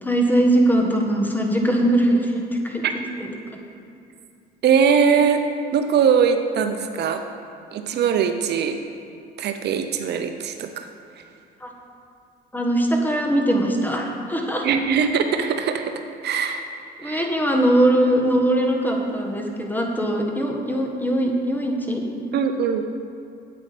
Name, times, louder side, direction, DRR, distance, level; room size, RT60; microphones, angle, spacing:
voice 1, 0.0-2.8 3.2-3.3 11.6-11.7 12.5-14.6 17.0-22.0, right 1 dB, 10° left, 1 dB, 1.6 m, -21 dB
voice 2, 4.6-5.4 5.7-7.2 7.7-8.8 9.4-10.9 14.6-16.7 17.0-17.3 22.3-22.9, right 7 dB, 60° right, 7 dB, 0.7 m, -21 dB
8.6 x 8.4 x 5.2 m, 2.5 s
supercardioid pair, 80°, 20 cm